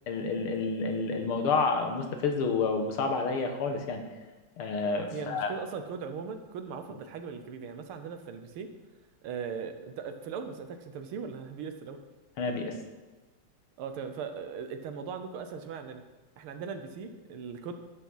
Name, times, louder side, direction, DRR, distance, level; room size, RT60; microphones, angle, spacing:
voice 1, 0.1-4.0 4.6-5.5 12.4-12.8, left 4 dB, 85° left, 4 dB, 2.1 m, -29 dB
voice 2, 5.1-8.7 9.2-12.0 13.8-16.0 16.4-17.7, right 6 dB, 80° right, 7 dB, 1.8 m, -39 dB
11.5 x 6.0 x 5.6 m, 1.2 s
omnidirectional pair, 2.3 m